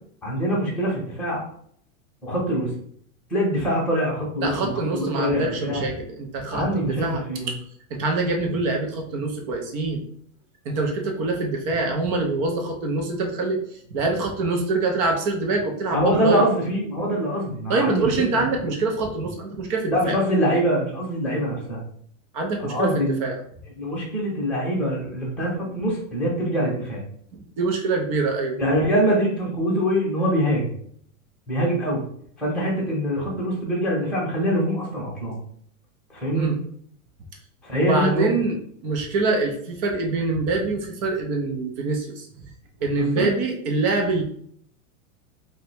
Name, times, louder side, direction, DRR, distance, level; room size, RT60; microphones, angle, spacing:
voice 1, 0.2-1.4 2.2-2.7 3.3-5.8 6.5-7.5 15.9-18.8 19.9-21.8 22.6-23.2 23.8-27.0 28.6-30.7 31.5-32.0 32.4-35.4 36.1-36.5 37.6-38.3 43.0-43.3, equal, 5° left, -5 dB, 0.8 m, -24 dB
voice 2, 4.4-7.2 7.9-10.0 10.7-13.6 13.9-16.4 17.7-20.1 22.3-22.9 23.2-23.3 27.6-28.6 36.3-36.6 37.8-38.6 38.8-42.3 42.8-44.2, right 3 dB, 25° right, 2 dB, 0.4 m, -24 dB
2.7 x 2.2 x 4.1 m, 0.63 s
supercardioid pair, 145°, 43 cm